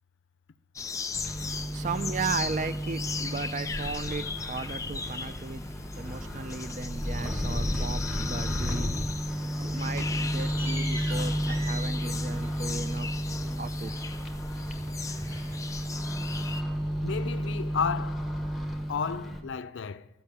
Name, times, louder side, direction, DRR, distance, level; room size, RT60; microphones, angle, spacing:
sound 1, 0.8-16.6, left 5 dB, 15° left, 0.4 m, -38 dB
Microwave oven, 1.1-19.4, equal, ahead, 0.9 m, -32 dB
voice 1, 1.4-5.6 6.0-8.9 9.7-13.9, right 4 dB, 40° right, 0.4 m, -36 dB
sound 2, 7.2-8.4 8.7-9.2 9.4-14.4 14.7-16.0, equal, 15° right, 3.4 m, -44 dB
voice 2, 17.0-18.2 18.9-20.1, left 6 dB, 80° left, 0.5 m, -32 dB
13.5 x 5.6 x 7.0 m
head